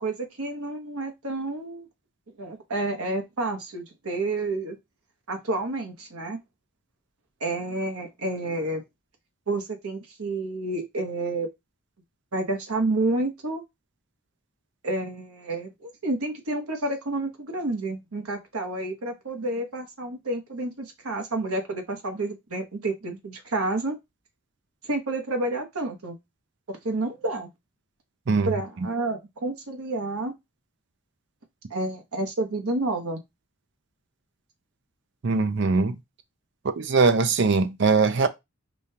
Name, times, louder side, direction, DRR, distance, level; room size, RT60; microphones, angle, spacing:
voice 1, 0.0-1.9 2.4-4.8 5.3-6.4 7.4-8.8 9.5-11.5 12.3-13.6 14.8-24.0 24.8-26.2 26.7-27.5 28.4-30.3 31.7-33.2, right 2 dB, 75° right, 1.0 m, -29 dB
voice 2, 35.2-36.0 36.8-38.3, right 4 dB, 50° right, 0.5 m, -21 dB
5.1 x 2.3 x 2.8 m
head